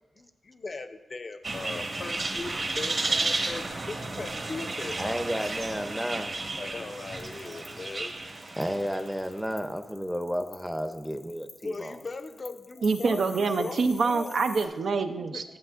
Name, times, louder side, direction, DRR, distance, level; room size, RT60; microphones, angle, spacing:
voice 1, 0.0-5.5 5.8-6.0 6.6-8.1 11.6-14.3 15.1-15.4, left 3 dB, 45° left, 9 dB, 0.6 m, -39 dB
sound 1, 1.4-9.2, right 2 dB, 50° right, 1.3 m, -33 dB
voice 2, 5.0-6.3 8.6-12.0, equal, ahead, 8 dB, 0.6 m, -32 dB
sound 2, 7.2-14.7, left 5 dB, 90° left, 0.8 m, -48 dB
voice 3, 12.8-15.6, right 4 dB, 70° right, 6 dB, 0.5 m, -26 dB
11.5 x 7.4 x 2.5 m, 1.1 s
cardioid pair, 60°, 0 cm